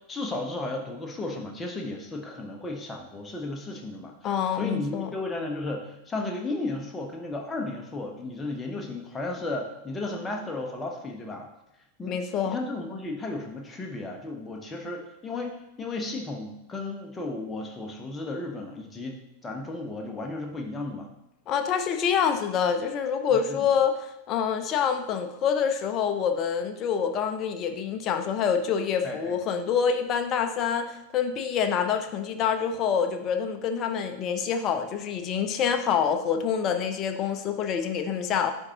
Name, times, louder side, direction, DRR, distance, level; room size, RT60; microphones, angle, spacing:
voice 1, 0.0-4.1 4.5-11.5 12.0-12.2 12.5-21.1 23.3-23.6 29.0-29.4, left 2 dB, 15° left, 2 dB, 1.0 m, -34 dB
voice 2, 4.2-5.1 12.1-12.6 21.5-38.5, left 7 dB, 35° left, 7 dB, 0.6 m, -26 dB
9.7 x 3.6 x 2.9 m, 0.88 s
figure-of-eight pair, 90°, 0 cm